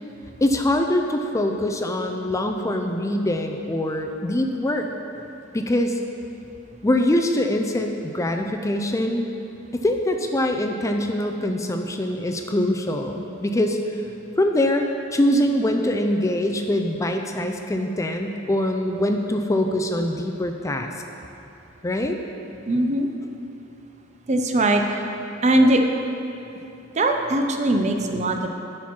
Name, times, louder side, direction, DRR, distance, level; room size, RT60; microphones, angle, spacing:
voice 1, 0.4-4.9 5.5-6.0 6.8-9.3 9.7-13.8 14.4-14.9 15.1-20.9 21.8-22.2, left 1 dB, 15° left, 4 dB, 0.4 m, -23 dB
voice 2, 22.7-23.1 24.3-24.8 25.4-25.8 26.9-28.5, right 1 dB, 35° right, 4 dB, 0.6 m, -20 dB
11.5 x 4.4 x 5.9 m, 2.8 s
head